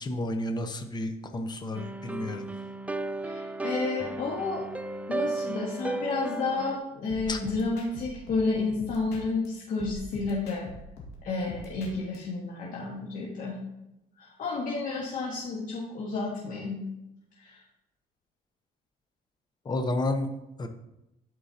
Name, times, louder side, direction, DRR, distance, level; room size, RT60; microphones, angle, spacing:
voice 1, 0.0-2.5 7.3-7.4 19.6-20.3 20.6-20.7, left 1 dB, 25° left, 6 dB, 0.9 m, -31 dB
sound 1, 1.7-6.8, right 2 dB, 10° right, 0.3 m, -34 dB
voice 2, 3.2-4.7 5.1-10.7 11.2-13.6 14.2-16.8 17.4-17.6, left 3 dB, 55° left, -5 dB, 1.6 m, -31 dB
sound 2, 7.1-9.5 9.8-12.2, left 1 dB, 75° left, 2.0 m, -43 dB
11.5 x 4.6 x 2.9 m, 0.88 s
cardioid pair, 110°, 17 cm